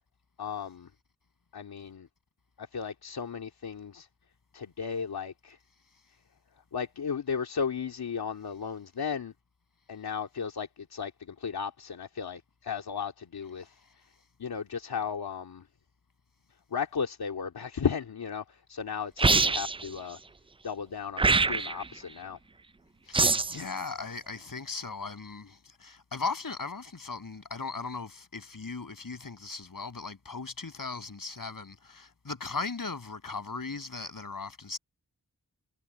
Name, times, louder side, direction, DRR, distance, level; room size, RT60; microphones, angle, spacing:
voice 1, 0.4-0.9 1.5-2.1 2.6-4.1 4.5-5.6 6.7-9.3 9.9-13.7 14.4-15.6 16.7-20.2 20.6-22.4 23.0-23.2 23.5-23.7, left 6 dB, 85° left, 2.4 m, -35 dB
sound 1, 19.2-19.9 21.2-21.9 23.1-23.6, right 4 dB, 15° right, 0.3 m, -24 dB
voice 2, 23.1-34.8, left 4 dB, 60° left, 7.0 m, -38 dB
cardioid pair, 45°, 37 cm